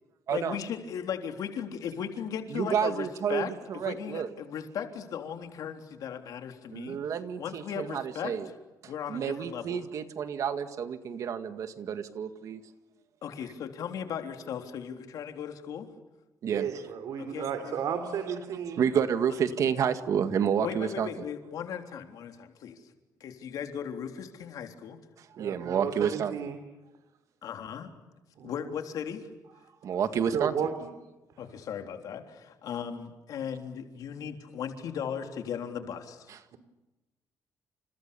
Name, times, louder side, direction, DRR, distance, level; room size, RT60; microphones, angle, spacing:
voice 1, 0.3-7.0 7.4-8.5 8.8-9.8 13.2-15.9 17.2-17.8 20.6-22.8 23.2-25.0 27.4-27.9 28.4-29.3 31.4-36.3, left 8 dB, 65° left, 5 dB, 3.6 m, -37 dB
voice 2, 2.5-4.3 6.7-8.5 9.1-12.6 16.4-16.6 18.8-21.1 25.3-26.5 29.8-30.5 36.3-36.6, right 7 dB, 55° right, 9 dB, 2.0 m, -30 dB
voice 3, 16.5-18.8 25.4-26.6 28.4-28.5 30.3-30.9, right 7 dB, 70° right, 7 dB, 3.6 m, -33 dB
30.0 x 28.5 x 7.1 m, 1.1 s
cardioid pair, 175°, 7 cm